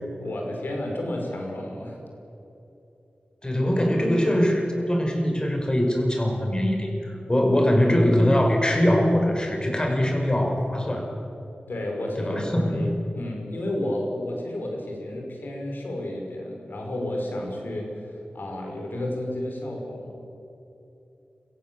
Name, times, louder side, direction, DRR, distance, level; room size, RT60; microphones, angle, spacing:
voice 1, 0.2-2.0 11.7-20.2, left 1 dB, 75° left, 1 dB, 5.5 m, -31 dB
voice 2, 3.4-11.0 12.2-12.8, equal, 25° left, 2 dB, 5.6 m, -22 dB
23.5 x 15.5 x 7.8 m, 3.0 s
cardioid pair, 45°, 3 cm